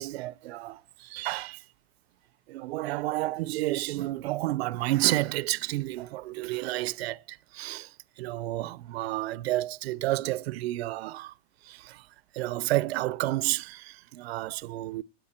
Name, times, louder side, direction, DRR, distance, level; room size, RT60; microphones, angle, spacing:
voice 1, 0.0-1.6 2.5-7.9 8.2-11.3 11.7-12.0 12.3-15.0, right 17 dB, 70° right, 0.6 m, -30 dB
17.5 x 8.4 x 4.3 m
supercardioid pair, 130°, 32 cm